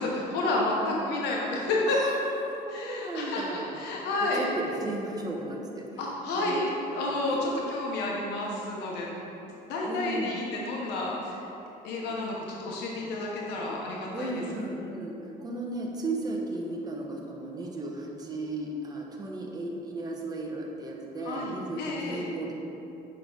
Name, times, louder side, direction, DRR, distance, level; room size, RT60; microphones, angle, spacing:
voice 1, 0.0-2.0 2.7-4.5 6.0-9.1 9.4-11.5 11.8-14.4 21.2-22.2, left 2 dB, 85° left, -3 dB, 1.1 m, -30 dB
voice 2, 2.0-3.8 4.2-5.8 6.3-6.7 7.2-7.5 9.8-10.4 14.1-15.1 15.4-22.5, right 2 dB, 25° right, -1 dB, 1.2 m, -35 dB
8.2 x 5.7 x 4.0 m, 2.9 s
cardioid pair, 110°, 17 cm